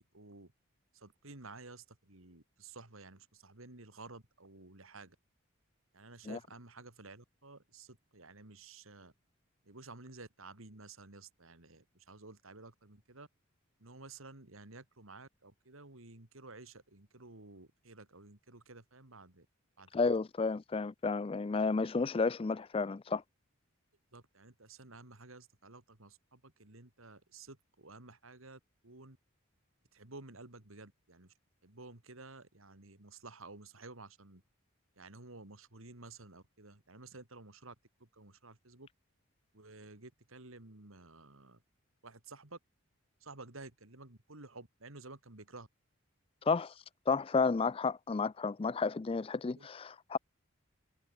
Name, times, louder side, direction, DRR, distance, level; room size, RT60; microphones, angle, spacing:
voice 1, 0.1-0.5 0.9-5.2 5.9-9.1 9.6-13.3 13.8-19.5 19.8-19.9 24.1-29.2 29.9-31.3 31.6-34.4 35.0-38.9 39.5-41.6 42.0-42.6 43.2-45.7 49.6-49.7, right 3 dB, 75° right, 2.9 m, -53 dB
voice 2, 19.9-23.2 46.5-46.7 47.1-50.2, left 4 dB, 25° left, 0.4 m, -32 dB
head